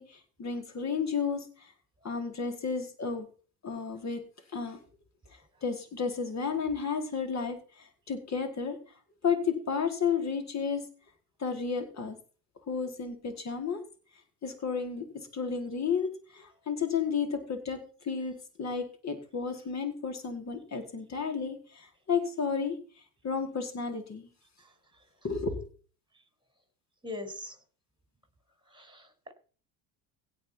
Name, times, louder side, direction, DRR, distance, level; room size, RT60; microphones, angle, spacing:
voice 1, 0.0-1.7 2.0-3.3 3.6-4.2 4.5-4.8 5.6-8.8 9.2-10.9 11.4-12.2 12.7-13.8 14.4-15.1 15.3-22.8 23.2-24.3 25.2-25.7, left 6 dB, 40° left, 6 dB, 4.6 m, -32 dB
voice 2, 27.0-27.6 28.7-29.3, left 2 dB, 10° right, 8 dB, 5.4 m, -41 dB
17.0 x 5.8 x 5.8 m, 0.38 s
supercardioid pair, 90°, 43 cm